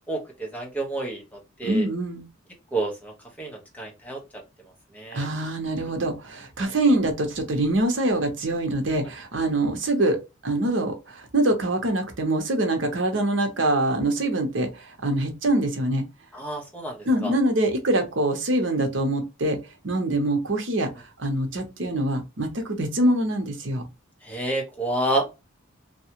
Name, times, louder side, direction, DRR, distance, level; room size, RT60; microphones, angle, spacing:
voice 1, 0.1-1.9 2.7-4.2 4.9-5.3 6.6-6.7 16.3-17.3 24.2-25.4, right 2 dB, 10° left, 0.8 m, -29 dB
voice 2, 1.6-2.3 5.1-16.0 17.1-19.6 19.8-23.9, right 1 dB, 60° right, 0.8 m, -24 dB
2.7 x 2.3 x 2.8 m
head